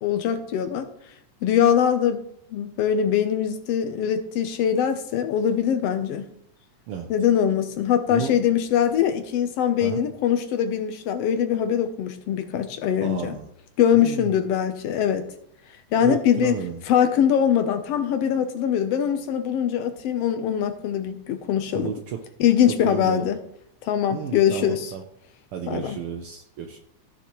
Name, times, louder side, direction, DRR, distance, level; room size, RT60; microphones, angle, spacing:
voice 1, 0.0-0.9 1.4-2.2 2.5-6.3 7.1-13.4 13.8-15.3 15.9-16.5 16.9-21.9 22.4-23.4 23.8-24.9 25.7-26.0, left 9 dB, 75° left, 1.5 m, -22 dB
voice 2, 8.1-8.4 9.8-10.0 13.0-13.5 13.9-14.3 16.0-16.8 21.7-22.2 22.8-23.3 24.1-25.0 25.5-26.8, right 8 dB, 80° right, 1.2 m, -32 dB
15.0 x 7.0 x 3.0 m
omnidirectional pair, 3.4 m